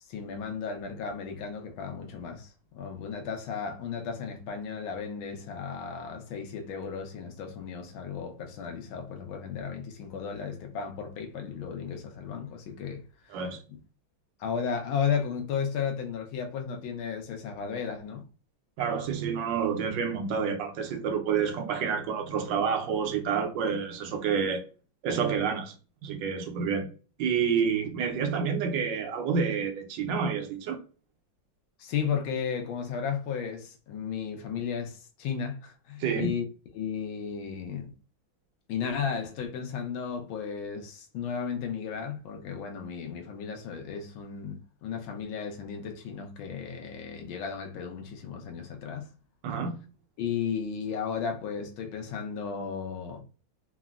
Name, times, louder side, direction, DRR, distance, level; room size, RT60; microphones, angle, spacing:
voice 1, 0.1-13.4 14.4-18.2 31.8-36.4 36.7-37.9 38.7-49.1 50.2-53.2, left 6 dB, 75° left, 1.4 m, -34 dB
voice 2, 13.3-13.6 18.8-24.6 25.0-25.7 26.0-26.9 27.2-30.8 36.0-36.3 49.4-49.8, right 6 dB, 70° right, 1.2 m, -28 dB
3.8 x 2.1 x 2.3 m
omnidirectional pair, 2.3 m